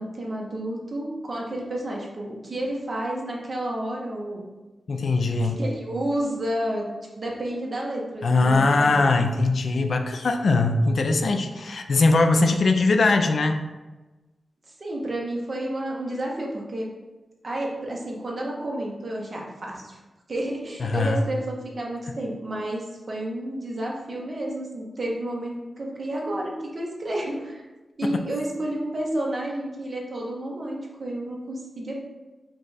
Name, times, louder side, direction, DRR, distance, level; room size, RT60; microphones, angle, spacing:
voice 1, 0.0-4.4 5.4-6.9 7.2-9.0 14.8-16.9 17.4-20.0 20.3-27.6 28.0-32.0, right 1 dB, 40° right, -2 dB, 0.9 m, -30 dB
voice 2, 4.9-5.6 8.2-13.6 20.8-21.2, left 3 dB, 65° left, 5 dB, 0.4 m, -21 dB
5.2 x 2.3 x 4.0 m, 1.2 s
wide cardioid pair, 150°, 0 cm